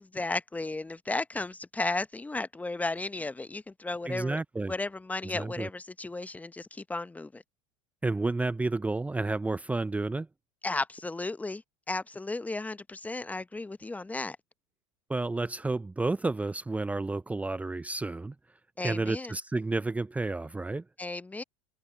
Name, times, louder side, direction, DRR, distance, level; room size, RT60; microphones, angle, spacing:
voice 1, 0.0-4.4 4.7-7.4 10.6-11.6 11.9-14.4 18.8-19.3 21.0-21.4, left 2 dB, 10° left, 1.2 m, -34 dB
voice 2, 4.1-4.7 5.2-5.7 8.0-10.3 15.1-18.3 18.8-20.8, right 3 dB, 10° right, 1.1 m, -31 dB
figure-of-eight pair, 85°, 18 cm